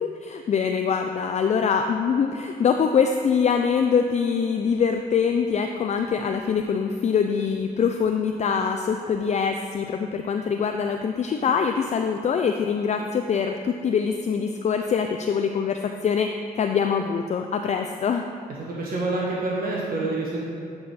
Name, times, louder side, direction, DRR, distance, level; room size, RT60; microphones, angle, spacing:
voice 1, 0.0-16.3 16.5-18.3, left 6 dB, 40° left, 5 dB, 0.4 m, -24 dB
voice 2, 18.6-20.4, right 2 dB, 60° right, -4 dB, 1.1 m, -27 dB
9.5 x 3.6 x 4.1 m, 2.6 s
supercardioid pair, 65°, 17 cm